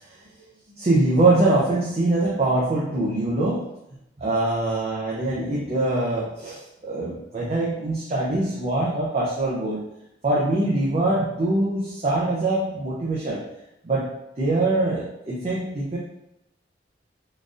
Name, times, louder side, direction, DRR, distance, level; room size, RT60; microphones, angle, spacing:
voice 1, 0.8-3.7 4.2-9.8 10.2-13.4 13.8-16.0, right 2 dB, 35° right, -5 dB, 0.5 m, -23 dB
3.8 x 2.5 x 2.5 m, 0.82 s
head